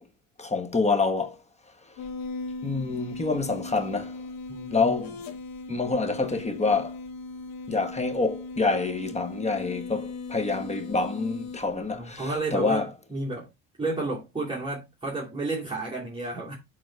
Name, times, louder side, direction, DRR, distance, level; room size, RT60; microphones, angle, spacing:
voice 1, 0.4-1.4 2.6-4.1 4.7-5.2 5.7-6.9 7.7-12.9, left 3 dB, 20° left, 1.3 m, -27 dB
sound 1, 2.0-12.4, left 3 dB, 70° left, 2.0 m, -38 dB
voice 2, 4.5-5.0 11.9-13.5 13.8-16.5, right 2 dB, 15° right, 2.7 m, -32 dB
7.5 x 4.1 x 4.5 m
cardioid pair, 95°, 35 cm